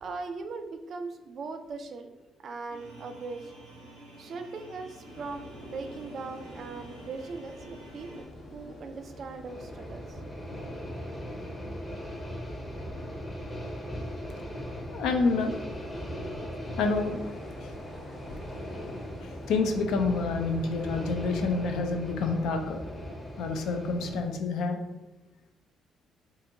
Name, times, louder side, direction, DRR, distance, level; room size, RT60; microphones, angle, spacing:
voice 1, 0.0-2.1 2.4-3.5 4.2-8.1 8.5-10.1, right 4 dB, 55° right, 7 dB, 0.3 m, -39 dB
sound 1, 2.7-8.2, right 1 dB, 85° right, 0.7 m, -49 dB
sound 2, 5.0-24.3, left 1 dB, 40° left, 1.2 m, -48 dB
sound 3, 9.5-24.2, equal, 15° left, 0.7 m, -39 dB
voice 2, 14.9-15.6 16.8-17.2 19.2-22.8 23.4-24.8, left 4 dB, 70° left, 5 dB, 0.3 m, -28 dB
2.5 x 2.4 x 2.7 m, 1.0 s
hypercardioid pair, 45°, 0 cm